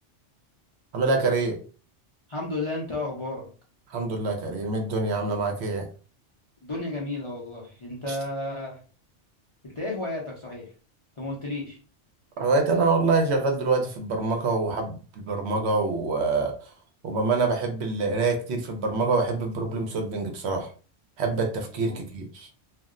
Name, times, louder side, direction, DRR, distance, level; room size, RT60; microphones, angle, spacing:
voice 1, 0.9-1.6 3.9-5.9 8.1-8.2 12.4-16.5 17.0-20.7 21.2-22.5, right 3 dB, 65° right, 4 dB, 0.9 m, -25 dB
voice 2, 2.3-3.5 6.6-8.8 9.6-10.7 11.2-11.8 21.9-22.0, left 2 dB, 35° left, -3 dB, 0.5 m, -32 dB
2.4 x 2.0 x 3.6 m, 0.38 s
omnidirectional pair, 1.2 m